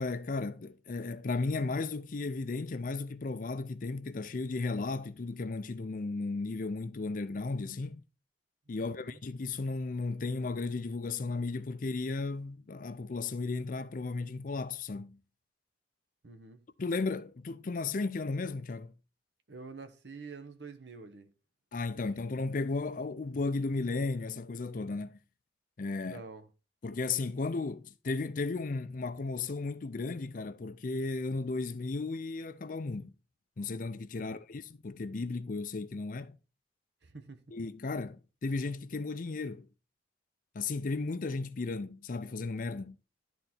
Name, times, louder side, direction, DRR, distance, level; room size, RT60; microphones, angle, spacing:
voice 1, 0.0-8.0 8.7-15.2 16.8-18.9 21.7-25.2 25.8-26.2 26.8-33.1 33.6-36.4 37.5-39.7 40.5-42.9, left 3 dB, 45° left, 0.5 m, -35 dB
voice 2, 8.8-9.2 16.2-16.6 19.5-21.3 21.9-22.1 26.0-26.5 34.2-34.3 37.0-37.4, right 4 dB, 70° right, 1.0 m, -48 dB
11.5 x 4.0 x 4.3 m
head